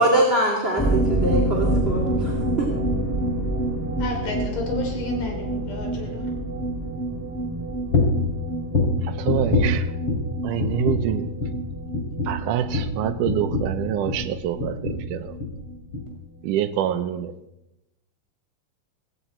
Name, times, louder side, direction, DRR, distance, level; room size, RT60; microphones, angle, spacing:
voice 1, 0.0-2.7, right 1 dB, 20° right, -3 dB, 2.3 m, -23 dB
sound 1, 0.8-16.2 16.4-16.5 16.8-16.9, right 1 dB, 5° left, 1.4 m, -28 dB
voice 2, 4.0-6.3, left 3 dB, 70° left, 2 dB, 4.5 m, -31 dB
sound 2, 7.9-8.3 8.7-10.3 10.6-11.1 11.4-11.6 11.9-14.3 14.6-15.1 15.4-15.6 15.9-16.1, left 2 dB, 45° left, 3.4 m, -24 dB
voice 3, 9.2-9.8 10.4-11.3 12.3-14.7 15.1-15.3 16.4-17.3, right 10 dB, 80° right, 9 dB, 2.3 m, -25 dB
17.0 x 16.5 x 4.4 m, 0.91 s
omnidirectional pair, 3.8 m